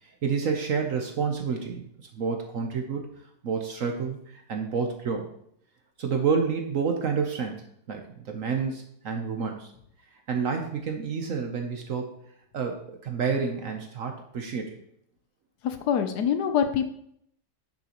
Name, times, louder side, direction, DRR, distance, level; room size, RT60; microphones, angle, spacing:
voice 1, 0.0-3.1 3.4-5.3 6.0-9.7 10.3-12.1 12.5-14.8, right 5 dB, 55° right, 3 dB, 1.1 m, -29 dB
voice 2, 15.6-16.8, left 8 dB, 75° left, 8 dB, 1.2 m, -25 dB
10.0 x 6.5 x 3.0 m, 0.71 s
omnidirectional pair, 1.9 m